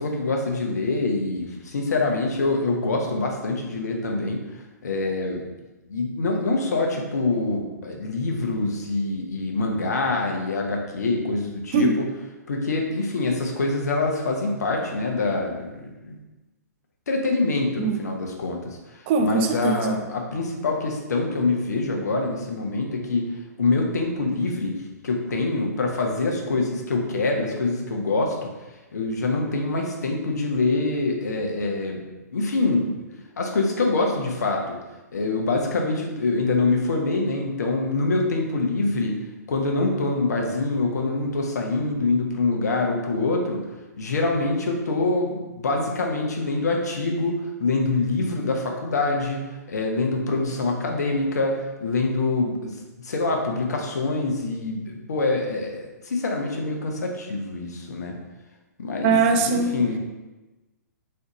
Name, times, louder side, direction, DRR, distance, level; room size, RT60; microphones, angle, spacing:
voice 1, 0.0-4.4 4.8-5.4 5.9-12.1 12.5-16.1 17.1-23.3 23.6-28.5 28.9-32.0 32.3-33.0 33.4-34.8 35.1-39.2 39.5-43.6 44.0-58.2 58.8-60.0, left 3 dB, 70° left, 1 dB, 0.8 m, -25 dB
voice 2, 19.1-20.0 59.0-59.7, right 4 dB, 40° right, 5 dB, 0.5 m, -21 dB
3.8 x 3.3 x 2.9 m, 1.1 s
figure-of-eight pair, 120°, 9 cm